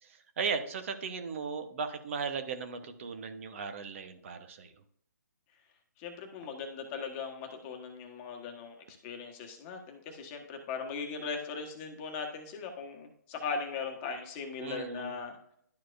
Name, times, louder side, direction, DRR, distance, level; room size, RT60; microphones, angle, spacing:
voice 1, 0.0-4.7 14.6-15.2, right 5 dB, 45° right, 8 dB, 1.0 m, -37 dB
voice 2, 6.0-15.4, left 5 dB, 25° left, 3 dB, 1.3 m, -39 dB
11.5 x 4.6 x 2.5 m, 0.69 s
hypercardioid pair, 150°, 10 cm